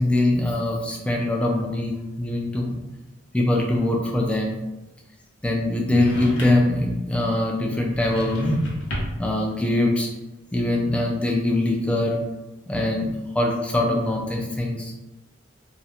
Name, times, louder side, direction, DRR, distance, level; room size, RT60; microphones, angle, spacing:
voice 1, 0.0-2.8 3.3-4.5 5.4-8.7 9.2-10.1 10.5-12.2 12.7-14.9, left 1 dB, 5° left, 0 dB, 0.3 m, -23 dB
sound 1, 5.9-6.8 7.9-9.3, left 1 dB, 85° left, 0.7 m, -31 dB
2.4 x 2.1 x 2.8 m, 1.0 s
head